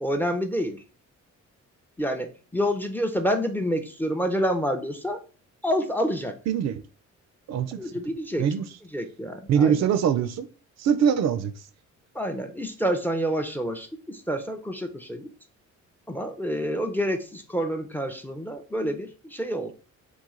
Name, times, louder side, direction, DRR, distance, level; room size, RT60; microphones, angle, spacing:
voice 1, 0.0-0.8 2.0-5.2 5.6-6.4 7.8-8.5 8.9-9.8 12.1-15.3 16.1-19.7, equal, 5° left, 0.4 m, -28 dB
voice 2, 6.5-6.8 7.5-7.8 8.4-8.6 9.5-10.5 10.8-11.5, right 8 dB, 60° right, 0.4 m, -22 dB
3.1 x 2.2 x 3.6 m
cardioid pair, 90°, 30 cm